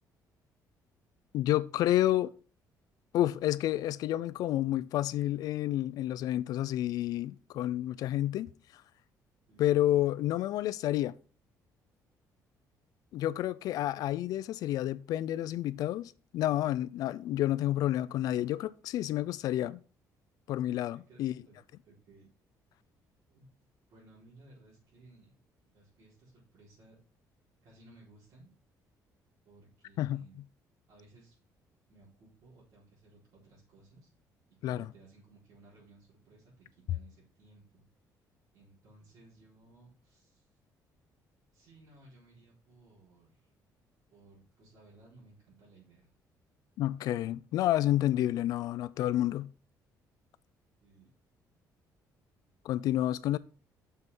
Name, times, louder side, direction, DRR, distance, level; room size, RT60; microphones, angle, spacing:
voice 1, 1.3-2.3 3.1-8.5 9.6-11.2 13.1-19.8 20.5-21.4 30.0-30.2 34.6-34.9 46.8-49.5 52.6-53.4, left 13 dB, 65° left, 0.5 m, -30 dB
voice 2, 20.9-21.5 21.8-22.3 23.3-23.5 23.9-25.3 25.6-27.0 27.6-28.5 29.4-30.4 30.9-31.4 31.9-34.1 34.6-37.8 38.5-40.4 41.5-43.5 44.1-46.1 50.8-51.1 52.4-52.6, right 2 dB, 55° right, 4.2 m, -59 dB
6.7 x 5.6 x 6.1 m
cardioid pair, 175°, 7 cm